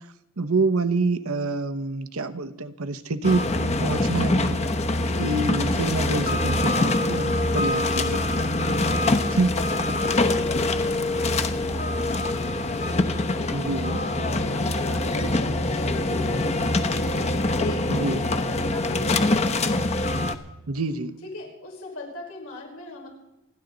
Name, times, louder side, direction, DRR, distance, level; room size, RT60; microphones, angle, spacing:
voice 1, 0.4-4.6 5.2-8.2 9.3-9.6 13.5-14.0 17.9-18.2 20.7-21.1, right 3 dB, 85° right, 11 dB, 1.0 m, -26 dB
sound 1, 3.2-20.3, left 2 dB, 30° left, 0.9 m, -24 dB
voice 2, 8.8-19.8 21.2-23.1, left 2 dB, 85° left, -1 dB, 5.2 m, -40 dB
28.0 x 10.5 x 4.0 m, 0.94 s
head